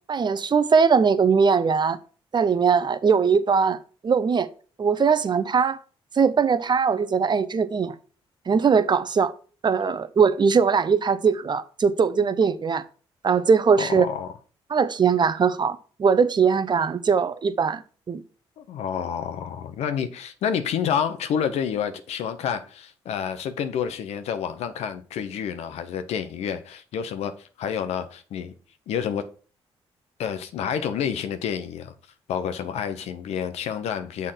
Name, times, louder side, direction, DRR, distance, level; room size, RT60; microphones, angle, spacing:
voice 1, 0.1-2.0 2.3-3.8 4.0-4.5 4.8-5.8 6.2-7.9 8.5-9.3 9.6-12.8 13.2-14.1 14.7-17.8 18.1-18.2, right 6 dB, 45° right, 0.8 m, -20 dB
voice 2, 13.8-14.3 18.6-28.5 28.9-29.2 30.2-31.9 32.3-34.3, left 8 dB, 80° left, 0.9 m, -29 dB
6.7 x 3.6 x 5.7 m
supercardioid pair, 65°, 11 cm